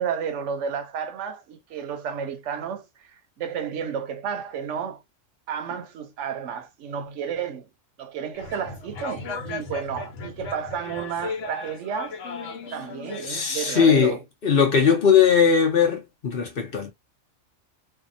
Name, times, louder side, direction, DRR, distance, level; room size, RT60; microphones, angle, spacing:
voice 1, 0.0-5.0 5.5-7.7 8.0-12.2 12.7-14.2, right 7 dB, 75° right, 0.9 m, -32 dB
sound 1, 8.3-13.3, left 3 dB, 75° left, 1.1 m, -36 dB
voice 2, 13.2-14.2 14.4-16.9, left 7 dB, 55° left, 0.8 m, -19 dB
2.7 x 2.3 x 2.5 m
omnidirectional pair, 1.3 m